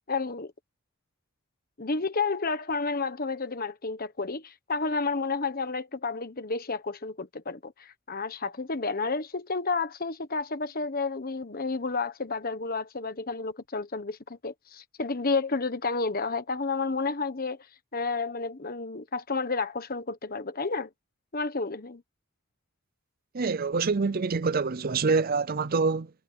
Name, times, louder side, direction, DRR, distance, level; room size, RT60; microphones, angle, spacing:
voice 1, 0.1-0.5 1.8-17.6 17.9-20.9 21.3-22.0, left 4 dB, 40° left, 1.3 m, -31 dB
voice 2, 23.3-26.1, right 4 dB, 45° right, 0.5 m, -26 dB
head